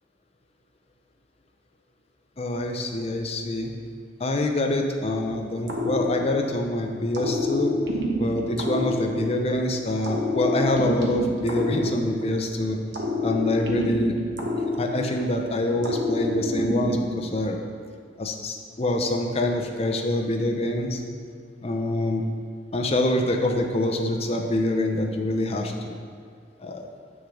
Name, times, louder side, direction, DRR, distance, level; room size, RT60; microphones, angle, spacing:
voice 1, 2.4-3.7 4.2-7.7 8.2-12.8 13.2-14.2 14.8-17.6 18.2-21.0 21.6-22.2 22.7-25.7 26.6-26.9, left 1 dB, 35° left, 3 dB, 0.6 m, -25 dB
sound 1, 5.7-6.7 7.1-9.6 10.0-12.5 12.9-15.4 15.8-17.3, left 1 dB, 70° right, 1.1 m, -27 dB
8.4 x 6.3 x 3.8 m, 2.1 s
head